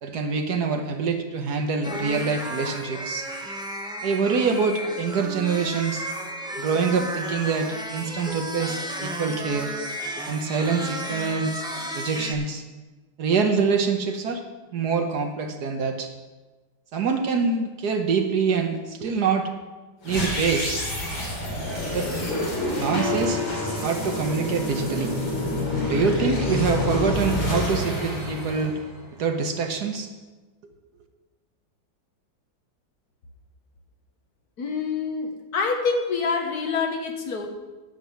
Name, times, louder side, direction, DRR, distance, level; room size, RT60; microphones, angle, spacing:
voice 1, 0.0-3.3 4.0-6.1 6.6-9.7 10.3-11.6 11.9-12.6 13.2-14.4 14.7-16.1 16.9-19.5 20.0-20.8 21.9-22.1 22.8-23.4 23.8-25.1 25.8-28.8 29.2-30.1, right 5 dB, 60° right, 5 dB, 1.4 m, -25 dB
sound 1, 1.8-12.3, right 1 dB, 5° right, 0.8 m, -33 dB
sound 2, 20.0-29.3, left 1 dB, 85° left, 3.7 m, -27 dB
voice 2, 34.6-37.5, left 4 dB, 55° left, 3 dB, 1.6 m, -26 dB
10.5 x 7.6 x 7.4 m, 1.2 s
omnidirectional pair, 2.0 m